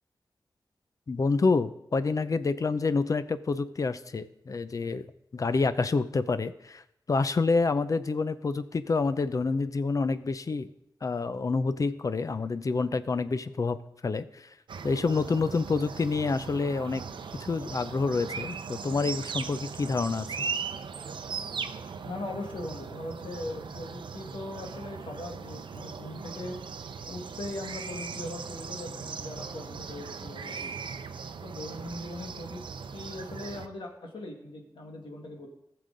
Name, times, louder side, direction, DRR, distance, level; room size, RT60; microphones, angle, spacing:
voice 1, 1.1-5.1 5.3-6.8 7.1-10.7 11.0-14.5 14.8-17.0 17.4-20.5, left 4 dB, 45° left, 13 dB, 0.5 m, -28 dB
sound 1, 14.7-33.7, right 5 dB, 80° right, 0.6 m, -39 dB
voice 2, 22.0-26.6 27.1-30.7 31.4-32.6 32.9-35.5, left 1 dB, 85° left, 1 dB, 2.1 m, -40 dB
18.5 x 6.7 x 3.9 m, 0.78 s
wide cardioid pair, 140°, 8 cm